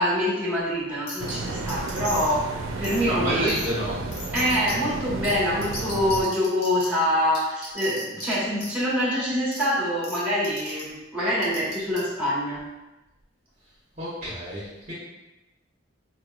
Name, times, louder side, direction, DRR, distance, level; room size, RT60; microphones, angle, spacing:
voice 1, 0.0-3.5 4.3-12.6, equal, 5° right, -10 dB, 1.4 m, -25 dB
sound 1, 1.1-1.3 1.7-2.3 2.8-3.0 3.5-3.7 4.1-4.7 5.2-5.3 5.6-6.9 7.3-8.3 8.6-8.7 9.5-9.6 10.0-10.2 10.4-10.8 11.4-12.0, left 1 dB, 50° left, 0.9 m, -36 dB
sound 2, 1.2-6.2, right 3 dB, 85° right, 0.4 m, -33 dB
voice 2, 3.0-4.0 14.0-14.9, equal, 35° right, -9 dB, 0.9 m, -29 dB
4.1 x 3.1 x 2.4 m, 1.0 s
head